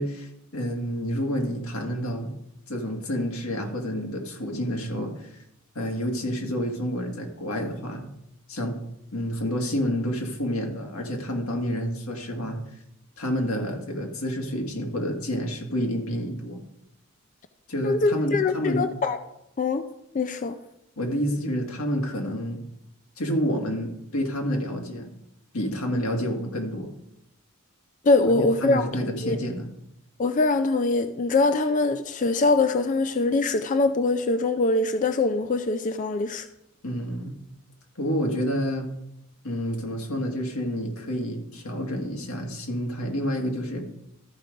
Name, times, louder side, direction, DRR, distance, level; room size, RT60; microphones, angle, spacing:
voice 1, 0.0-2.3 2.7-5.4 5.8-8.0 8.5-8.8 9.1-12.6 13.2-16.6 17.7-18.9 21.0-22.6 23.2-25.1 25.5-26.9 28.4-29.7 36.8-37.4 38.0-38.9 39.4-43.8, equal, 90° left, 1.9 m, -29 dB
voice 2, 17.8-19.2 19.6-19.8 20.1-20.6 28.0-28.9 29.2-29.4 30.2-36.5, left 3 dB, 35° left, 0.4 m, -23 dB
13.5 x 4.7 x 5.2 m
head